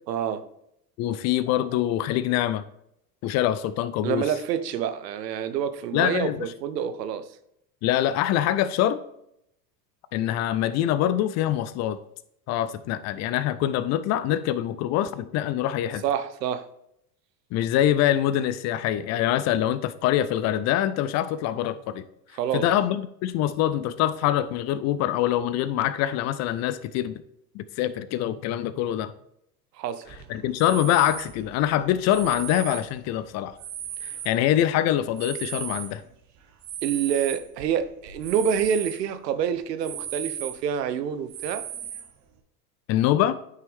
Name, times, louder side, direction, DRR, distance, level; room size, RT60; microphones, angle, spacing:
voice 1, 0.1-0.5 4.0-7.2 16.0-16.7 22.4-22.7 29.8-30.2 36.8-41.6, right 8 dB, 80° right, 0.9 m, -27 dB
voice 2, 1.0-2.6 3.2-4.3 5.9-6.5 7.8-9.0 10.1-12.0 12.5-16.0 17.5-22.0 22.5-27.2 27.5-29.1 30.3-33.5 34.0-36.0 42.9-43.3, left 12 dB, 35° left, 0.4 m, -24 dB
sound 1, 30.1-34.7 35.1-39.0 39.4-39.5 39.8-40.8 41.3-42.3, right 10 dB, 35° right, 1.1 m, -37 dB
9.5 x 5.6 x 3.5 m
hypercardioid pair, 90°, 48 cm